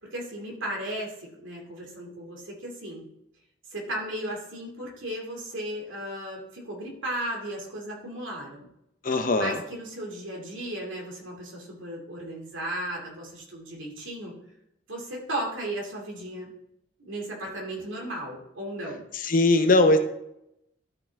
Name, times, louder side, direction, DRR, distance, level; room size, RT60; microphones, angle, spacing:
voice 1, 0.0-3.0 3.7-8.7 9.4-14.3 14.9-16.5 17.0-19.0, right 1 dB, 90° right, -1 dB, 2.6 m, -35 dB
voice 2, 9.0-9.6 19.1-20.0, left 2 dB, 45° left, 7 dB, 0.8 m, -20 dB
12.5 x 5.8 x 3.5 m, 0.81 s
head